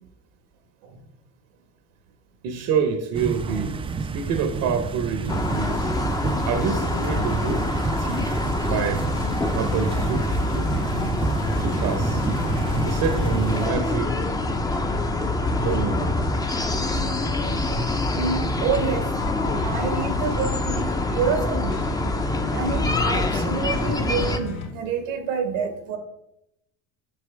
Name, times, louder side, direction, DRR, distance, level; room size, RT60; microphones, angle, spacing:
voice 1, 2.4-5.9 6.5-9.1 9.5-11.0 11.6-12.2 12.8-14.2 15.6-16.2 17.8-17.9, right 6 dB, 60° right, 1.0 m, -28 dB
sound 1, 3.1-13.7, right 5 dB, 15° right, 0.3 m, -29 dB
sound 2, 5.3-24.4, left 2 dB, 10° left, 0.7 m, -26 dB
sound 3, 9.1-24.7, left 3 dB, 60° left, 2.3 m, -33 dB
voice 2, 18.1-19.1 19.6-21.8 22.5-26.0, right 6 dB, 90° right, 1.6 m, -28 dB
8.0 x 6.1 x 3.4 m
supercardioid pair, 105°, 35 cm